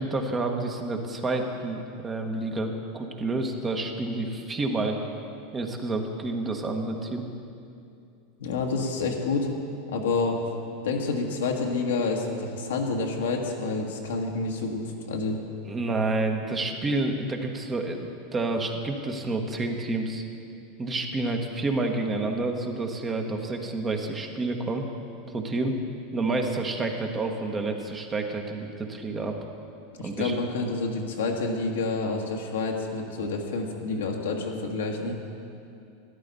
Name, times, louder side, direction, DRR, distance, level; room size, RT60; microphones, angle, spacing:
voice 1, 0.0-5.0 5.5-7.3 15.6-20.2 20.8-24.8 25.3-25.8 26.1-29.4 30.0-30.4, right 2 dB, 25° right, 3 dB, 1.3 m, -29 dB
voice 2, 8.4-9.5 9.9-10.4 10.8-14.8 15.1-15.4 30.0-35.2, left 3 dB, 75° left, 1 dB, 1.4 m, -28 dB
12.5 x 11.0 x 4.1 m, 2.6 s
hypercardioid pair, 90°, 0 cm